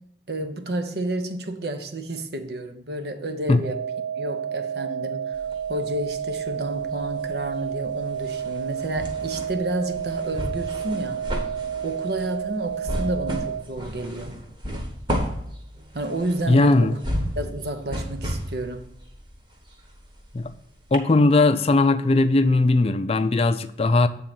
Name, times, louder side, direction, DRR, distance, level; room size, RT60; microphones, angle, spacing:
voice 1, 0.3-3.8 4.1-5.4 5.7-11.3 11.8-14.4 15.9-17.0 17.4-18.9, right 1 dB, 60° right, 0.9 m, -30 dB
sound 1, 3.6-13.6, right 8 dB, 90° right, 0.6 m, -30 dB
sound 2, 5.3-6.5 6.8-20.5 20.9-21.0, equal, 25° right, 1.3 m, -33 dB
voice 2, 16.5-16.9 20.3-20.5 20.9-24.1, left 2 dB, 35° left, 0.4 m, -18 dB
8.5 x 3.8 x 5.8 m
head